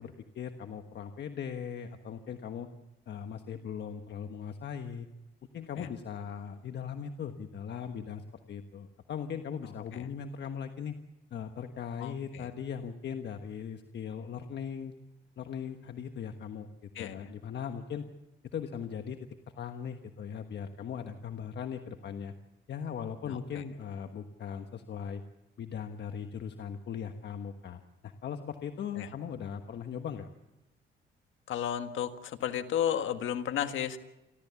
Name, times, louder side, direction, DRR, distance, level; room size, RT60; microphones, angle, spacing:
voice 1, 0.0-2.7 3.1-5.1 5.5-11.0 11.3-14.9 15.4-16.7 17.0-18.1 18.5-19.2 19.6-22.3 22.7-25.2 25.6-30.3, left 7 dB, 60° left, 6 dB, 1.3 m, -39 dB
voice 2, 12.0-12.5 16.9-17.3 23.3-23.6 29.0-29.1 31.5-34.0, left 10 dB, 75° left, 8 dB, 1.7 m, -33 dB
28.5 x 13.5 x 7.1 m, 0.97 s
cardioid pair, 90°, 20 cm